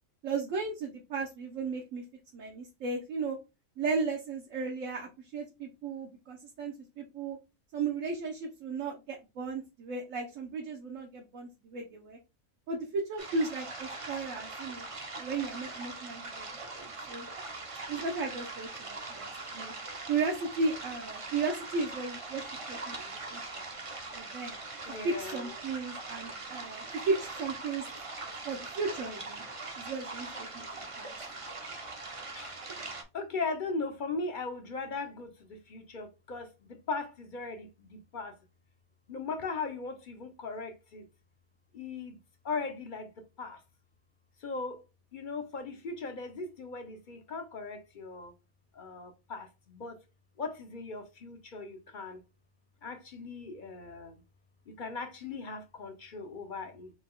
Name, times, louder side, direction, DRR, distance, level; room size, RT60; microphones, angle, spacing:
voice 1, 0.2-2.0 2.3-3.4 3.8-7.4 7.7-12.2 12.7-14.9 15.2-17.3 17.9-19.7 20.1-23.0 23.3-23.6 24.1-24.6 25.0-27.9 28.4-29.4 29.8-30.6 31.0-31.1, right 4 dB, 70° right, 1.2 m, -35 dB
sound 1, 13.2-33.0, right 3 dB, 35° right, 0.6 m, -42 dB
voice 2, 24.8-25.5 32.3-32.6 33.1-38.4 39.1-41.0 41.7-42.2 42.4-43.1 43.4-43.6 44.4-44.8 45.1-48.3 48.7-50.0 50.4-52.2 52.8-54.2 54.7-56.9, left 4 dB, 45° left, 0.7 m, -38 dB
4.4 x 2.3 x 3.7 m
omnidirectional pair, 1.4 m